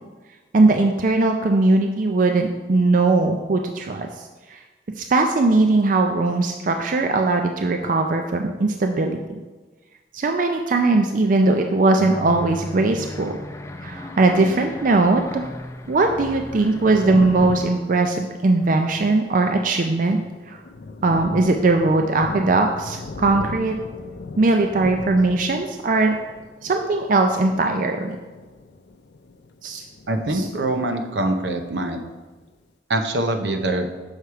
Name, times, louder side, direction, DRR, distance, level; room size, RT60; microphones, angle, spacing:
voice 1, 0.5-4.6 5.0-9.4 10.1-13.4 13.8-15.5 15.9-20.2 20.5-20.6 21.0-23.8 24.4-26.2 26.6-28.2 29.6-29.8 30.3-30.5, right 2 dB, 50° right, 4 dB, 0.4 m, -20 dB
sound 1, 12.0-17.5, left 1 dB, 15° left, 0.4 m, -36 dB
Thunder, 16.5-31.0 31.2-32.5, left 3 dB, 70° left, 0.5 m, -37 dB
voice 2, 30.1-32.0 32.9-33.9, right 1 dB, 80° right, 6 dB, 0.8 m, -24 dB
6.4 x 5.7 x 4.8 m, 1.3 s
head